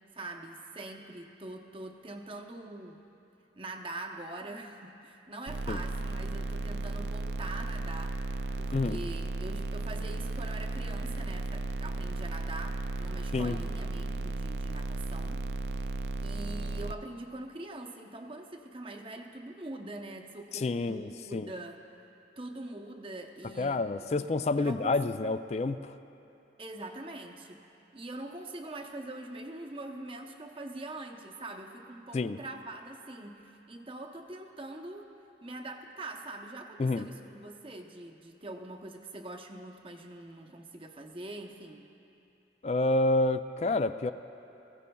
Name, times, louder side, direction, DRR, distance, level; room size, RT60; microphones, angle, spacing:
voice 1, 0.2-3.0 3.6-15.5 15.7-21.8 22.4-24.3 24.6-25.0 26.6-27.6 27.9-35.1 35.4-41.9, right 2 dB, 30° right, 3 dB, 0.8 m, -43 dB
sound 1, 5.5-16.9, right 2 dB, 75° right, 0.4 m, -35 dB
voice 2, 20.5-21.5 23.6-25.9 32.1-32.4 36.8-37.1 42.6-44.1, left 2 dB, 40° left, 12 dB, 0.3 m, -29 dB
21.5 x 15.5 x 2.3 m, 2.9 s
head